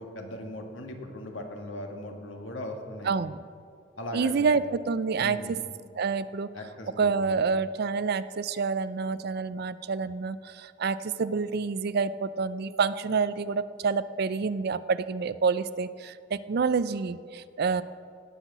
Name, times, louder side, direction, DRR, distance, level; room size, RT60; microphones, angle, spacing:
voice 1, 0.0-3.1 4.0-4.6 5.2-5.6 6.5-7.4, left 1 dB, 80° left, 3 dB, 1.7 m, -39 dB
voice 2, 3.0-3.4 4.1-5.6 5.9-6.5 7.0-17.8, right 5 dB, 55° right, 15 dB, 0.4 m, -28 dB
17.5 x 5.8 x 7.1 m, 2.2 s
head